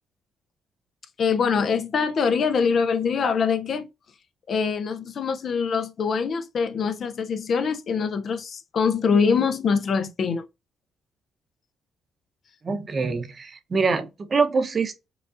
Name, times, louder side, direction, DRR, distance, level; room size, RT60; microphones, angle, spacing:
voice 1, 1.2-3.9 4.5-10.4, left 5 dB, 55° left, 0.5 m, -24 dB
voice 2, 12.6-15.1, right 4 dB, 40° right, 0.8 m, -25 dB
4.9 x 2.4 x 2.5 m
cardioid pair, 90°, 0 cm